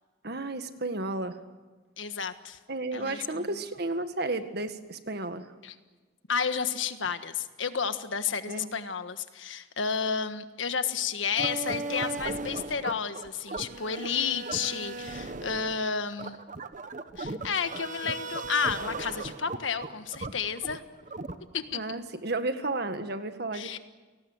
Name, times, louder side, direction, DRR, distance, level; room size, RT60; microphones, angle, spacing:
voice 1, 0.2-1.4 2.7-5.5 8.5-8.7 21.7-23.8, right 2 dB, 55° right, 9 dB, 1.8 m, -33 dB
voice 2, 2.0-2.6 2.9-3.5 5.6-5.7 6.3-16.4 17.2-20.8 21.5-21.8 23.5-23.8, left 6 dB, 80° left, 10 dB, 1.5 m, -31 dB
sound 1, 11.4-21.8, right 3 dB, 40° right, 1.2 m, -37 dB
29.5 x 19.0 x 8.0 m, 1.3 s
head